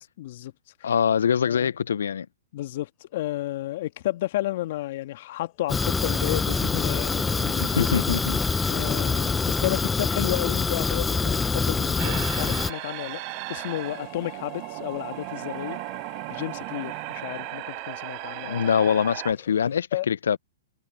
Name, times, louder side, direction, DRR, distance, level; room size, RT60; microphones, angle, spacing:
voice 1, 0.2-0.5 0.8-0.9 1.4-1.7 2.5-8.0 8.7-13.2 13.5-15.8 16.3-18.7 19.9-20.1, left 15 dB, 55° left, 2.0 m, -32 dB
voice 2, 0.8-2.3 7.5-8.8 18.5-20.4, left 7 dB, 80° left, 0.4 m, -24 dB
Water tap faucet, 4.0-19.8, left 23 dB, 40° left, 7.4 m, -51 dB
Fire, 5.7-12.7, left 4 dB, 10° left, 0.6 m, -25 dB
sound 1, 12.0-19.3, right 38 dB, 40° right, 4.6 m, -36 dB
hypercardioid pair, 130°, 0 cm